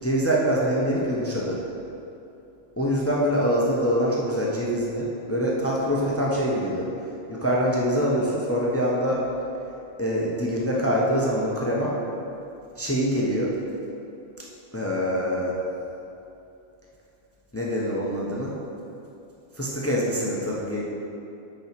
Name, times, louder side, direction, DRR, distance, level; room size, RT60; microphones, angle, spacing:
voice 1, 0.0-1.6 2.8-6.9 7.3-9.2 10.0-12.0 12.8-13.5 14.7-15.6 17.5-18.6 19.5-20.8, equal, 10° left, -4 dB, 0.9 m, -24 dB
9.0 x 4.6 x 6.0 m, 2.8 s
omnidirectional pair, 1.4 m